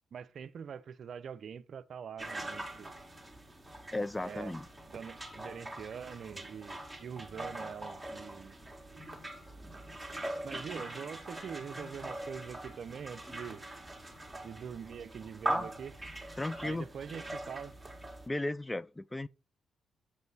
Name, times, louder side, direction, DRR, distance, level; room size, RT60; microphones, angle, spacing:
voice 1, 0.1-2.9 4.2-4.5 4.9-8.5 8.9-9.1 10.4-13.6 14.4-15.9 16.6-17.7, right 7 dB, 60° right, 0.4 m, -44 dB
sound 1, 2.2-18.3, right 1 dB, 10° right, 1.6 m, -42 dB
voice 2, 3.9-4.7 15.5-15.7 16.4-16.9 18.3-19.3, left 2 dB, 15° left, 0.3 m, -35 dB
6.8 x 5.2 x 4.1 m
supercardioid pair, 50°, 0 cm